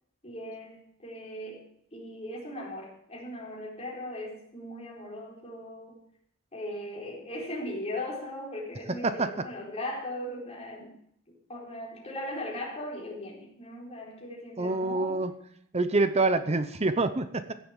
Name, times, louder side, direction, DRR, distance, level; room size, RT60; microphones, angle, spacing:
voice 1, 0.2-1.7 1.9-6.0 6.5-11.0 11.3-15.2, left 1 dB, 30° left, -4 dB, 4.3 m, -38 dB
voice 2, 8.9-9.5 14.6-15.3 15.7-17.5, right 3 dB, 30° right, 11 dB, 0.8 m, -26 dB
16.0 x 7.0 x 7.3 m, 0.70 s
head